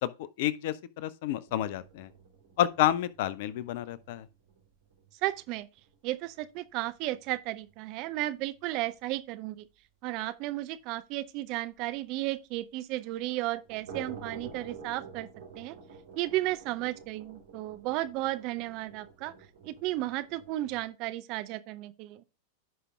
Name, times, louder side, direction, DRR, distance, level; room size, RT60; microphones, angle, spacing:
voice 1, 0.0-2.1 2.6-4.3, left 12 dB, 50° left, 0.5 m, -30 dB
sound 1, 1.5-7.4 7.6-7.7 8.1-8.2 8.6-8.7 9.0-9.1 11.9-12.0 13.5-20.9, right 5 dB, 60° right, 2.9 m, -49 dB
voice 2, 5.2-5.7 6.0-9.7 10.0-15.3 15.6-15.7 16.2-19.3 19.6-22.2, right 16 dB, 40° right, 0.6 m, -34 dB
15.5 x 5.1 x 2.3 m
figure-of-eight pair, 90°, 0 cm